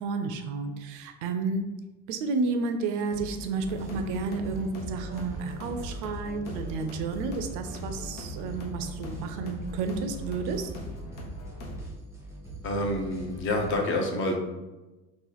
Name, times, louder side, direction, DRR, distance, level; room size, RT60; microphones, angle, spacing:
voice 1, 0.0-1.7 2.1-10.7, right 4 dB, 60° right, 6 dB, 0.4 m, -31 dB
sound 1, 3.1-13.8, right 1 dB, 10° right, 0.6 m, -44 dB
sound 2, 3.6-11.8, equal, 80° left, 1.0 m, -40 dB
voice 2, 12.6-14.4, left 1 dB, 35° left, 1 dB, 0.6 m, -28 dB
3.0 x 2.4 x 3.8 m, 1.1 s
cardioid pair, 150°, 36 cm